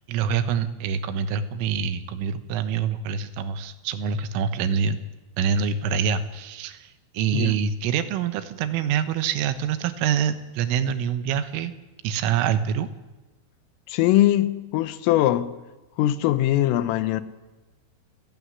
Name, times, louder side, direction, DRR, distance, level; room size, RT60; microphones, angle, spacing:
voice 1, 0.1-5.0 5.4-11.7 12.0-12.9, right 7 dB, 80° right, 3.8 m, -25 dB
voice 2, 13.9-15.6 16.0-17.2, left 14 dB, 85° left, 3.7 m, -21 dB
28.0 x 15.5 x 9.8 m
omnidirectional pair, 5.7 m